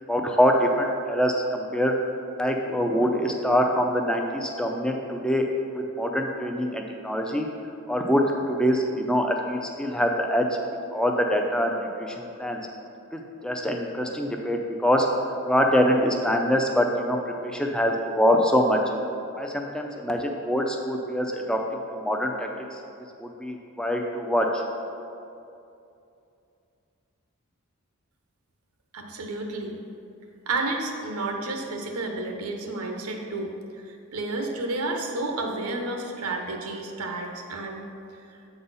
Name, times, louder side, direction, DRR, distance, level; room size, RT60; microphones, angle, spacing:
voice 1, 0.1-1.9 2.4-5.4 6.0-7.5 7.9-10.5 10.9-12.6 13.1-15.1 15.5-18.8 19.4-21.6 21.9-22.5 23.2-24.6, equal, 5° left, 2 dB, 0.4 m, -24 dB
voice 2, 28.9-29.8 30.5-33.5 33.8-37.8 38.3-38.4, right 2 dB, 90° right, 3 dB, 0.8 m, -31 dB
7.8 x 4.1 x 5.5 m, 2.6 s
head